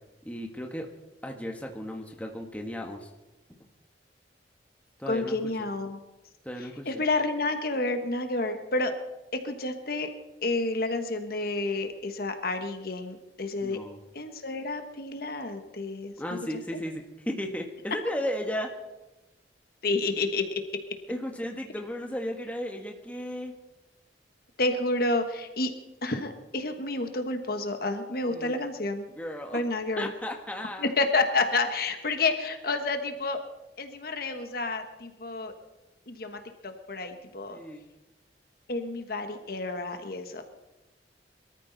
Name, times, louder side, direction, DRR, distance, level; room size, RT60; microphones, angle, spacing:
voice 1, 0.2-0.9 1.2-3.1 5.0-5.4 6.4-7.0 13.6-14.0 16.2-18.7 21.1-23.5 28.3-28.6 29.1-29.6 30.0-30.9 37.5-37.9, equal, 10° left, 2 dB, 1.4 m, -35 dB
voice 2, 5.1-6.0 6.9-8.9 9.4-10.1 10.4-13.8 14.1-16.1 19.8-20.6 24.6-25.7 26.0-29.1 29.5-30.1 30.8-33.4 33.8-35.5 36.1-37.6 38.7-40.4, left 2 dB, 55° left, 6 dB, 1.3 m, -29 dB
23.0 x 13.5 x 4.0 m, 1.0 s
head